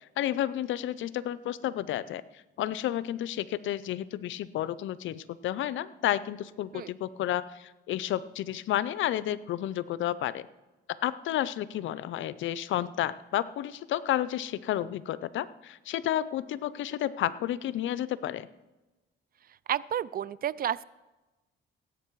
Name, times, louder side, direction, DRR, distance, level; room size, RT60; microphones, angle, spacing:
voice 1, 0.2-2.2 2.6-10.5 11.0-18.5, left 12 dB, 75° left, 17 dB, 0.6 m, -31 dB
voice 2, 19.7-20.8, right 10 dB, 50° right, 20 dB, 0.4 m, -31 dB
17.0 x 8.3 x 4.6 m, 1.1 s
cardioid pair, 90°, 20 cm